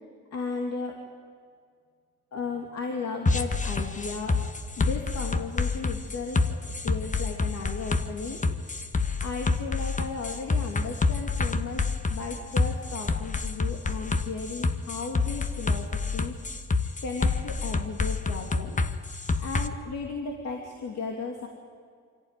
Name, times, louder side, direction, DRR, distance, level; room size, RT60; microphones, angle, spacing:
voice 1, 0.3-1.0 2.3-4.4 4.8-8.4 9.2-16.4 17.0-18.8 19.4-21.5, left 4 dB, 60° left, 1 dB, 2.8 m, -35 dB
sound 1, 3.3-19.7, left 3 dB, 25° left, 1.3 m, -27 dB
25.0 x 16.5 x 9.2 m, 2.1 s
cardioid pair, 90°, 30 cm